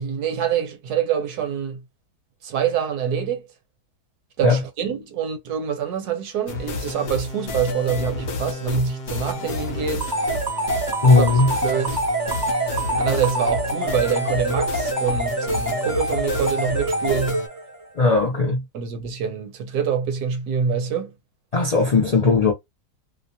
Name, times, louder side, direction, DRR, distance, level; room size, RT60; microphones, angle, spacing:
voice 1, 0.0-1.8 2.4-3.5 4.4-10.1 11.1-11.3 11.6-12.0 13.0-17.4 18.7-21.1, right 7 dB, 75° right, 1.2 m, -25 dB
sound 1, 6.5-17.5, left 3 dB, 50° left, 0.7 m, -31 dB
sound 2, 10.0-17.8, right 2 dB, 25° right, 0.4 m, -25 dB
voice 2, 11.0-11.5 17.9-18.6 21.5-22.5, left 3 dB, 85° left, 0.3 m, -17 dB
2.7 x 2.1 x 2.7 m
omnidirectional pair, 1.7 m